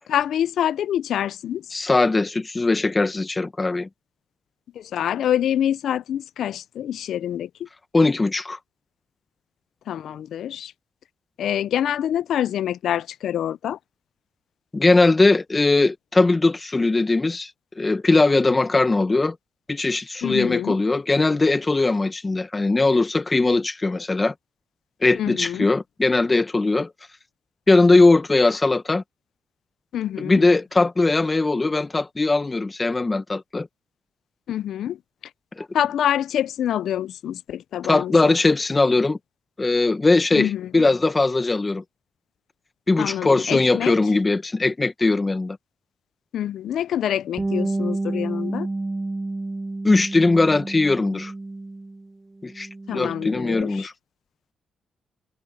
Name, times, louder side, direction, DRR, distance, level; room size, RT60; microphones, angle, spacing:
voice 1, 0.1-1.7 4.8-7.7 9.9-10.7 11.4-13.8 20.2-20.8 25.2-25.7 29.9-30.4 34.5-35.0 35.7-38.3 40.3-40.9 43.0-43.9 46.3-48.7 52.9-53.9, left 10 dB, 75° left, 0.5 m, -26 dB
voice 2, 1.7-3.9 7.9-8.6 14.7-17.5 17.8-19.4 19.7-24.3 25.0-26.9 27.7-29.0 30.2-33.7 35.6-35.7 37.9-39.2 39.6-41.8 42.9-45.6 49.8-51.3 52.4-53.9, left 3 dB, 25° left, 1.6 m, -20 dB
Bass guitar, 47.4-52.1 52.4-53.6, right 2 dB, 20° right, 0.6 m, -30 dB
cardioid pair, 70°, 0 cm